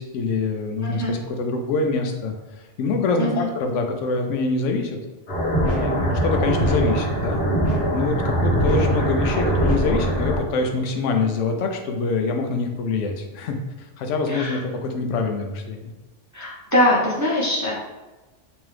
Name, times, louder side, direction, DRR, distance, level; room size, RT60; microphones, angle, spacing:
voice 1, 0.0-5.0 5.7-7.4 7.9-15.9, left 3 dB, 85° left, 4 dB, 0.9 m, -25 dB
voice 2, 0.8-1.2 3.2-3.5 14.3-14.6 16.3-17.7, left 1 dB, 25° right, -6 dB, 0.4 m, -22 dB
sound 1, 5.3-10.4, right 1 dB, 60° left, 1.2 m, -22 dB
3.5 x 3.0 x 3.2 m, 1.1 s
omnidirectional pair, 1.2 m